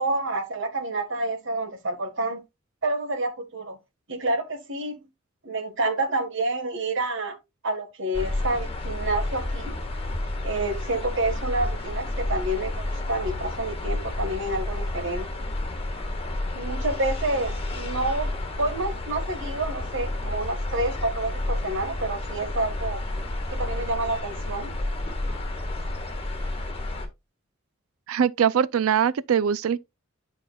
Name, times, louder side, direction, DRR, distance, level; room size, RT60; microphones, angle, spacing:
voice 1, 0.0-2.4 2.8-3.8 4.1-5.0 5.4-7.4 7.6-9.7 10.4-15.3 16.5-23.0 23.5-24.7, right 2 dB, 65° right, 1.7 m, -28 dB
sound 1, 8.1-27.1, left 1 dB, 30° left, 1.7 m, -31 dB
voice 2, 28.1-29.8, right 8 dB, 80° right, 0.4 m, -22 dB
10.5 x 5.7 x 2.4 m
head